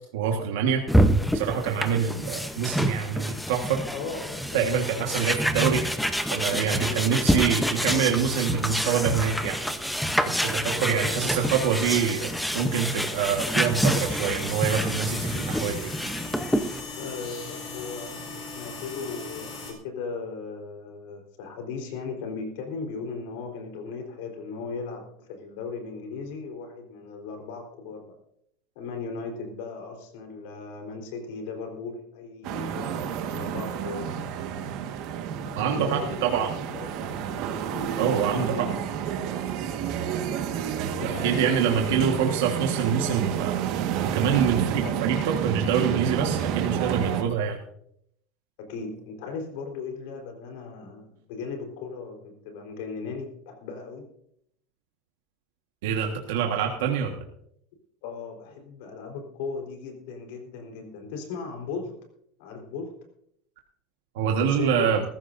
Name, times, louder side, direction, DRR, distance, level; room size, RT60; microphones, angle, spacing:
voice 1, 0.1-0.9 1.3-3.8 4.5-5.8 6.3-9.6 10.2-15.9 35.5-36.5 37.9-38.7 41.0-43.6 44.0-47.6 55.8-57.2 64.1-65.0, right 7 dB, 90° right, 2 dB, 1.5 m, -26 dB
sound 1, 0.9-16.8, equal, ahead, 0.8 m, -27 dB
voice 2, 3.9-5.2 6.8-7.6 7.8-8.3 10.8-11.5 17.0-28.2 28.8-34.1 35.6-38.8 41.0-42.0 44.8-45.0 46.7-47.5 48.6-54.1 58.0-61.9 62.4-62.9 64.4-64.9, left 4 dB, 75° left, 3 dB, 4.0 m, -37 dB
sound 2, 10.9-19.7, left 3 dB, 40° left, 4.2 m, -40 dB
sound 3, 32.4-47.2, right 9 dB, 50° right, 1.5 m, -30 dB
20.0 x 14.5 x 2.6 m, 0.70 s
cardioid pair, 165°, 0 cm